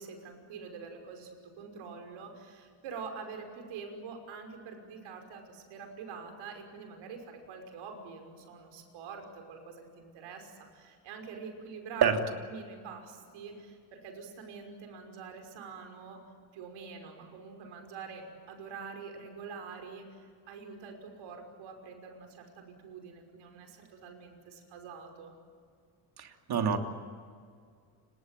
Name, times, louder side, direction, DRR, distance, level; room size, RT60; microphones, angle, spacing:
voice 1, 0.0-12.1 12.5-16.2 16.5-25.3, right 5 dB, 85° right, 4 dB, 5.9 m, -45 dB
voice 2, 26.2-26.8, right 7 dB, 55° right, 4 dB, 3.1 m, -26 dB
29.5 x 19.5 x 9.3 m, 2.1 s
cardioid pair, 120°, 46 cm